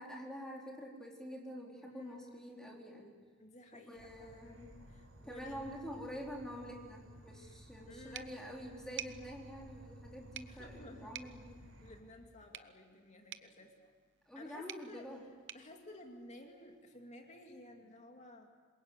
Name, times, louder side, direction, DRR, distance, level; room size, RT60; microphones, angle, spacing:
voice 1, 0.0-3.2 3.7-4.7 5.2-11.6 14.3-15.2, equal, 5° left, -1 dB, 4.3 m, -47 dB
voice 2, 1.8-2.4 3.4-5.7 7.2-7.3 7.8-8.4 10.5-13.9 14.3-15.1 15.5-18.5, left 1 dB, 35° left, 3 dB, 2.7 m, -54 dB
Insect / Frog, 3.9-12.0, right 1 dB, 85° right, 4.7 m, -56 dB
sound 1, 8.1-16.8, right 11 dB, 60° right, 0.8 m, -52 dB
27.0 x 22.0 x 8.3 m, 1.5 s
head